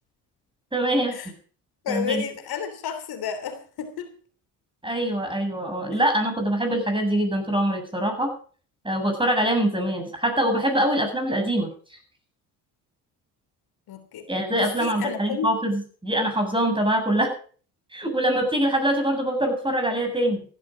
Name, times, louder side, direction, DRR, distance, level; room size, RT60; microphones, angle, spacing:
voice 1, 0.7-1.3 1.9-2.2 4.8-8.3 8.8-12.0 14.3-17.3 17.9-20.5, right 1 dB, 10° right, 5 dB, 7.8 m, -24 dB
voice 2, 1.8-4.1 13.9-14.3 14.5-15.5, left 7 dB, 65° left, 8 dB, 3.1 m, -31 dB
15.5 x 12.5 x 5.2 m, 0.43 s
supercardioid pair, 70°, 40 cm